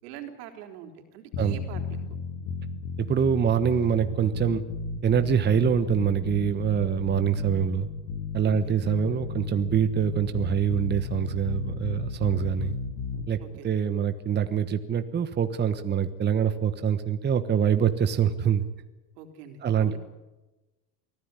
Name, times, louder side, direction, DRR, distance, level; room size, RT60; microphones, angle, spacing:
voice 1, 0.0-2.0 8.4-8.8 13.4-13.7 19.2-20.0, right 9 dB, 80° right, 5 dB, 3.9 m, -44 dB
sound 1, 1.3-13.3, left 4 dB, 70° left, 3.4 m, -34 dB
voice 2, 3.0-4.6 5.0-7.9 8.3-12.8 13.3-13.4 13.6-18.7 19.6-20.0, right 8 dB, 20° right, 9 dB, 1.2 m, -25 dB
23.5 x 16.0 x 9.7 m, 1.1 s
supercardioid pair, 120°, 47 cm